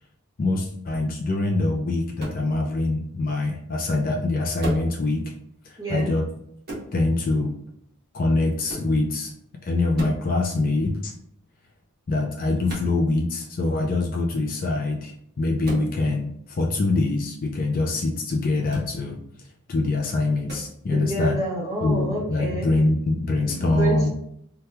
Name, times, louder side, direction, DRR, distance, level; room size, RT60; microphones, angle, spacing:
voice 1, 0.4-5.3 5.6-6.3 6.9-7.5 8.1-9.3 9.6-11.1 12.1-19.2 19.7-21.4 21.8-24.1, left 2 dB, 40° left, 0 dB, 0.4 m, -24 dB
sound 1, 2.2-2.5 4.6-4.9 6.7-6.9 8.7-8.9 9.9-10.3 12.7-12.9 15.6-15.9 18.7-18.9 20.5-20.7, equal, 45° right, 1.0 m, -33 dB
voice 2, 5.8-6.1 20.9-22.7 23.7-24.1, right 2 dB, 15° right, -6 dB, 1.0 m, -28 dB
2.8 x 2.3 x 3.3 m, 0.73 s
head